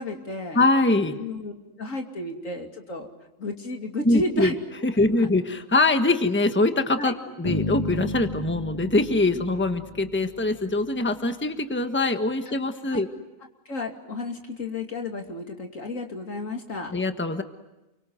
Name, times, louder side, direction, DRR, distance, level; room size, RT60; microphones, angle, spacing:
voice 1, 0.0-0.6 1.2-1.5 1.8-3.1 3.4-4.5 5.2-5.3 7.0-7.1 12.5-12.6 12.9-13.0 13.7-16.9, left 2 dB, 75° left, 3 dB, 3.2 m, -32 dB
voice 2, 0.5-1.2 4.0-4.5 4.8-13.1 16.9-17.4, left 2 dB, 10° left, 7 dB, 1.3 m, -23 dB
sound 1, 7.4-10.5, left 2 dB, 35° left, 3.0 m, -32 dB
29.5 x 24.0 x 7.9 m, 1.0 s
omnidirectional pair, 1.4 m